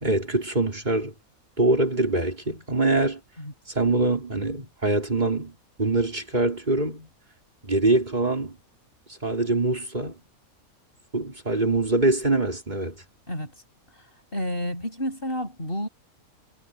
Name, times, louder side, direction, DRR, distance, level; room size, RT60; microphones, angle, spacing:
voice 1, 0.0-1.1 1.6-3.2 3.7-7.1 7.6-8.6 9.1-10.2 11.1-12.9, right 2 dB, 30° right, 4.4 m, -24 dB
voice 2, 14.3-15.9, equal, 40° left, 7.8 m, -30 dB
omnidirectional pair, 1.5 m